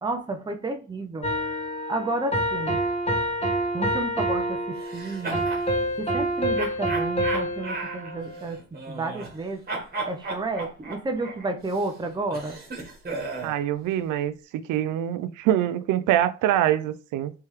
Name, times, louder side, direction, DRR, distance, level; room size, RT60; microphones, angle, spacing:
voice 1, 0.0-1.3 1.9-2.8 3.7-5.5 6.0-9.6 10.1-12.6, right 2 dB, 15° right, 0.7 m, -31 dB
sound 1, 1.2-8.5, right 1 dB, 20° left, 2.0 m, -27 dB
sound 2, 4.8-5.7 6.6-9.4 9.7-13.6, right 3 dB, 30° right, 1.5 m, -35 dB
voice 2, 13.4-17.3, right 12 dB, 85° right, 0.5 m, -24 dB
3.5 x 3.3 x 3.1 m
cardioid pair, 90°, 30 cm